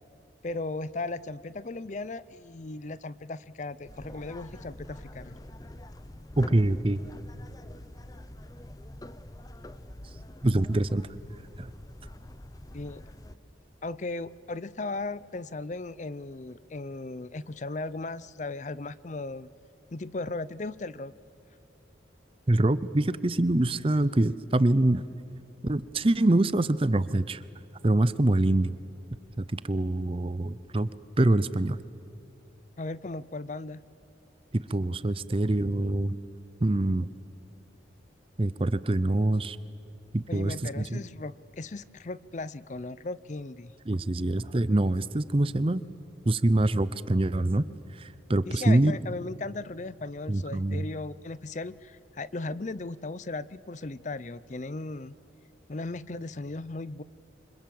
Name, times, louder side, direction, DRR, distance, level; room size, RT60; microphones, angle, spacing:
voice 1, 0.4-5.3 12.7-13.0 13.8-19.5 19.9-21.1 32.8-33.8 40.3-43.7 48.5-55.2 55.7-57.0, left 2 dB, 40° left, 18 dB, 0.5 m, -37 dB
sound 1, 3.9-13.4, left 1 dB, 20° left, 0.8 m, -45 dB
voice 2, 6.4-7.0 10.4-11.1 11.6-11.7 22.5-25.0 25.6-27.4 27.8-28.7 29.4-30.9 31.2-31.8 34.5-36.2 36.6-37.1 38.4-39.6 40.1-41.0 43.9-45.8 46.3-47.6 48.0-48.9 50.3-50.9, right 1 dB, 30° right, 16 dB, 0.6 m, -25 dB
28.0 x 26.0 x 7.7 m, 2.8 s
head